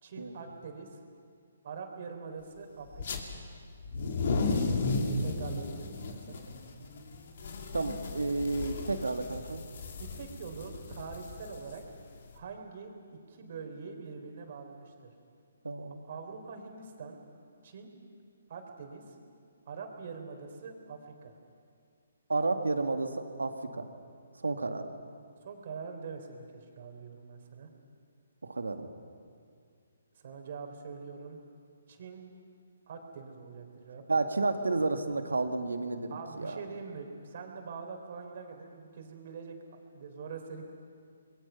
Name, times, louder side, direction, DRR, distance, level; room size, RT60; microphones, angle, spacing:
voice 1, 0.0-1.0 1.6-3.2 5.2-6.4 10.0-11.8 12.3-12.9 13.3-15.1 16.1-17.2 17.6-17.9 18.5-19.2 19.7-21.4 25.4-27.7 30.2-31.4 31.9-32.2 32.9-34.0 36.1-40.7, right 5 dB, 50° right, 4 dB, 3.8 m, -44 dB
sound 1, 2.9-3.2 3.8-12.3, left 3 dB, 55° left, 2.7 m, -34 dB
voice 2, 7.7-9.6 15.6-16.0 22.3-23.9 24.4-24.9 28.4-28.9 34.1-36.6, right 3 dB, 85° right, 7 dB, 1.9 m, -31 dB
26.5 x 22.0 x 5.8 m, 2.2 s
figure-of-eight pair, 140°, 0 cm